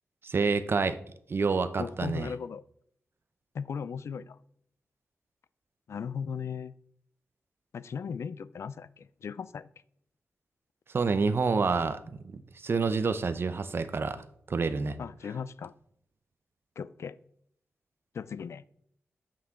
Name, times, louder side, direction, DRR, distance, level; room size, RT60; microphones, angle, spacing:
voice 1, 0.2-1.0 1.3-2.3 10.9-15.0, right 4 dB, 55° right, 12 dB, 0.7 m, -28 dB
voice 2, 1.8-2.6 3.5-4.4 5.9-6.7 7.7-9.7 15.0-15.7 16.8-17.2 18.1-18.6, left 6 dB, 75° left, 16 dB, 0.4 m, -37 dB
8.5 x 5.8 x 3.7 m, 0.69 s
cardioid pair, 70°, 5 cm